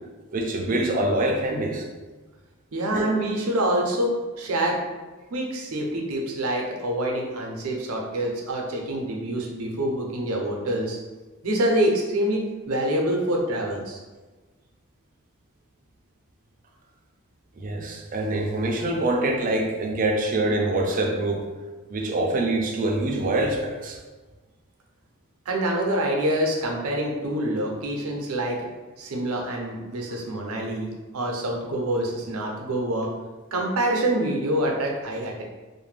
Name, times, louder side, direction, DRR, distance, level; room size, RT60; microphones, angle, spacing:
voice 1, 0.3-1.9 2.9-3.1 17.6-21.4 21.9-24.0 27.4-27.5, right 2 dB, 40° right, 1 dB, 0.4 m, -25 dB
voice 2, 2.7-4.8 5.3-11.0 11.4-12.4 12.7-14.0 25.5-28.6 29.0-30.9 31.1-33.1 33.5-35.4, right 1 dB, 85° right, 0 dB, 0.6 m, -26 dB
2.5 x 2.1 x 3.2 m, 1.2 s
head